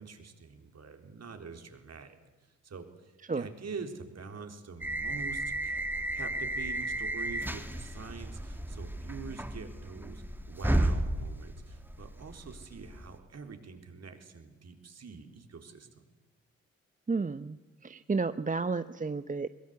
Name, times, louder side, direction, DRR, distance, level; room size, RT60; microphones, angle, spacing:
voice 1, 0.0-2.2 2.6-5.8 6.1-16.0, right 5 dB, 50° right, 6 dB, 4.1 m, -45 dB
sound 1, 4.8-13.2, right 1 dB, 5° right, 2.9 m, -33 dB
voice 2, 17.1-19.5, right 4 dB, 25° right, 13 dB, 1.0 m, -32 dB
23.0 x 21.5 x 8.3 m, 1.3 s
hypercardioid pair, 45°, 34 cm